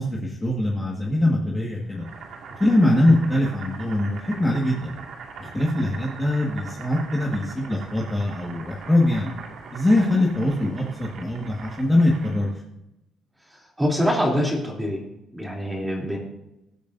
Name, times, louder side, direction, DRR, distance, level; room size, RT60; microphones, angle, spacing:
voice 1, 0.0-2.0 2.6-4.9 5.4-9.3 9.7-12.5, left 1 dB, 10° left, -3 dB, 1.7 m, -22 dB
Boiling, 1.9-12.6, right 5 dB, 60° right, 2.1 m, -41 dB
voice 2, 13.5-15.0 15.3-16.2, equal, 5° right, -1 dB, 3.2 m, -25 dB
21.5 x 8.5 x 2.7 m, 0.89 s
cardioid pair, 155°, 0 cm